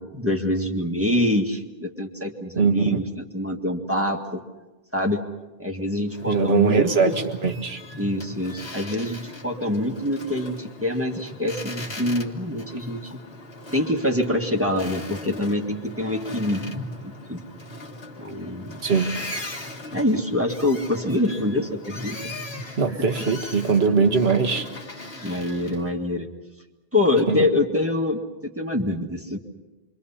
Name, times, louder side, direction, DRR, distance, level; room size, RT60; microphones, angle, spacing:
voice 1, 0.0-3.0 3.3-4.4 4.9-5.2 5.6-7.1 8.0-13.1 13.7-16.7 17.0-17.4 18.2-18.8 19.9-22.2 25.2-26.3 26.9-29.4, left 1 dB, 15° right, 2 dB, 1.8 m, -25 dB
voice 2, 2.6-3.0 6.3-7.8 18.8-19.1 22.8-24.7 27.3-27.5, right 5 dB, 80° right, 5 dB, 1.8 m, -21 dB
Boat Water vehicle, 6.1-25.9, left 2 dB, 75° left, 2.1 m, -39 dB
28.0 x 24.0 x 5.7 m, 1.2 s
omnidirectional pair, 1.0 m